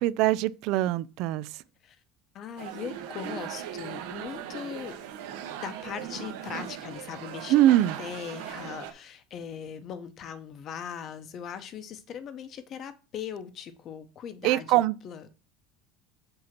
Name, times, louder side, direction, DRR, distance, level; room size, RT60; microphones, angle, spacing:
voice 1, 0.0-1.6 7.5-8.0 14.4-15.0, right 14 dB, 55° right, 0.3 m, -23 dB
voice 2, 2.3-5.0 5.6-7.6 8.0-15.2, left 8 dB, 35° left, 0.8 m, -39 dB
sound 1, 2.6-8.9, right 10 dB, 85° right, 1.1 m, -39 dB
7.6 x 2.8 x 5.8 m
cardioid pair, 165°, 0 cm